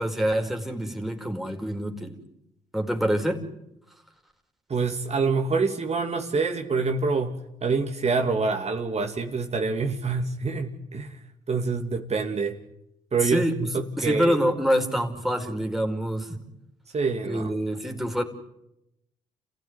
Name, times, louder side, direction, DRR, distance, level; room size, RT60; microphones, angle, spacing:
voice 1, 0.0-2.2 2.7-3.4 13.2-13.7 14.0-16.4 17.3-18.2, equal, ahead, 3 dB, 4.8 m, -26 dB
voice 2, 4.7-11.2 11.5-12.6 13.1-14.4 16.9-17.5, right 4 dB, 45° right, 3 dB, 2.8 m, -26 dB
29.0 x 16.0 x 9.8 m, 0.86 s
supercardioid pair, 60°, 16 cm